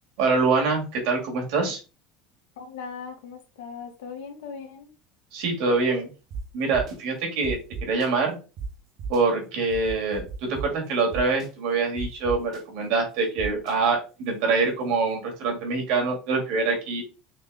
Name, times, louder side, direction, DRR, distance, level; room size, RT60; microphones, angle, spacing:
voice 1, 0.2-1.8 5.3-6.1 6.5-8.4 9.1-17.0, right 4 dB, 70° right, 1 dB, 2.0 m, -25 dB
voice 2, 2.6-4.9, left 6 dB, 85° left, 4 dB, 1.2 m, -39 dB
sound 1, 6.3-6.4 6.7-6.9 7.4-8.1 8.6-8.7 9.0-9.2 9.7-10.6 11.1-11.5 12.0-12.6 13.4-13.7, right 6 dB, 50° right, 1.3 m, -34 dB
4.2 x 3.2 x 3.5 m, 0.33 s
supercardioid pair, 105°, 0 cm